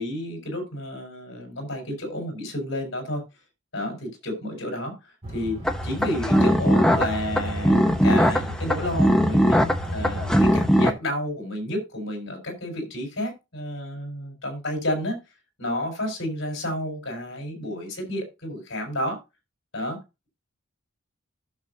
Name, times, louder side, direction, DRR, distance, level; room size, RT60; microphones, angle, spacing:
voice 1, 0.0-3.2 3.7-5.6 5.8-15.2 15.6-19.2 19.7-20.0, left 1 dB, 65° left, 4 dB, 4.4 m, -31 dB
sound 1, 5.2-10.7, equal, 30° right, 2.2 m, -34 dB
sound 2, 5.6-10.9, equal, 5° left, 0.7 m, -21 dB
14.5 x 6.5 x 2.7 m, 0.25 s
head